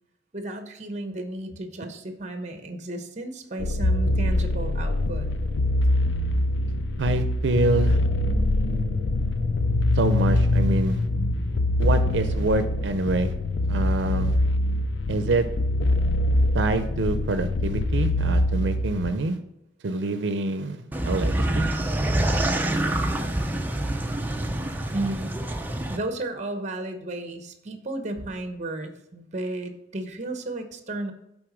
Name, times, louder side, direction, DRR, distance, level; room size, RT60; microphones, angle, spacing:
voice 1, 0.3-5.3 24.9-25.3 25.9-31.1, right 1 dB, 40° right, 7 dB, 0.9 m, -33 dB
sound 1, 3.6-19.1, left 1 dB, 85° left, 0.5 m, -24 dB
voice 2, 7.0-8.0 10.0-11.0 11.8-13.3 13.7-14.4 15.1-15.5 16.5-19.4 19.8-21.7, right 2 dB, 80° right, 9 dB, 0.5 m, -26 dB
sound 2, 7.8-12.6, left 4 dB, 50° left, 2.1 m, -28 dB
sound 3, 20.9-26.0, right 1 dB, 10° right, 0.5 m, -26 dB
7.8 x 4.1 x 5.0 m, 0.82 s
head